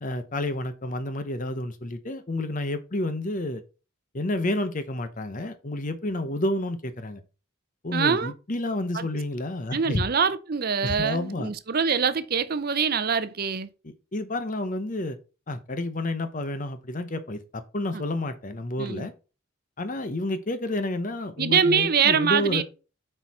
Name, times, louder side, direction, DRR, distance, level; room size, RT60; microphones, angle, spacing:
voice 1, 0.0-3.6 4.1-7.2 7.8-10.0 10.8-11.5 13.8-15.2 15.5-19.1 19.8-22.6, left 1 dB, 40° left, 0.8 m, -30 dB
voice 2, 7.9-8.3 8.9-9.1 9.7-13.7 17.9-18.0 18.8-19.1 21.4-22.6, right 6 dB, 45° right, 0.6 m, -24 dB
7.9 x 4.6 x 4.2 m
head